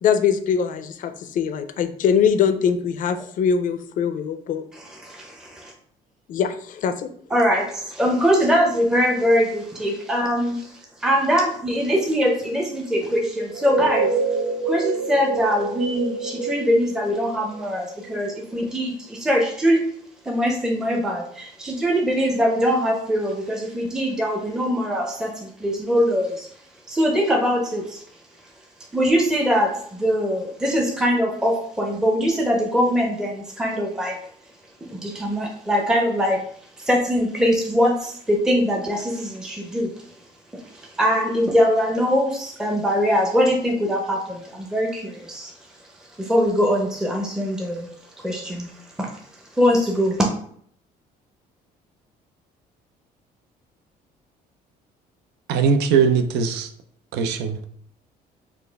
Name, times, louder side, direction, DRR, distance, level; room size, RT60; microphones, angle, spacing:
voice 1, 0.0-4.6 6.3-7.1, left 7 dB, 50° left, 0.4 m, -22 dB
voice 2, 4.7-5.7 7.3-14.2 14.7-19.8 20.2-26.5 26.9-28.0 28.9-34.2 34.9-36.4 36.8-39.9 40.5-45.5 46.2-47.9 48.2-48.7 49.0-49.1 49.5-50.3, equal, 5° right, 0.5 m, -22 dB
sound 1, 13.4-18.0, right 4 dB, 30° right, 1.0 m, -27 dB
voice 3, 55.5-56.7 57.1-57.6, right 6 dB, 90° right, 0.4 m, -20 dB
4.1 x 2.4 x 3.3 m
cardioid pair, 110°, 17 cm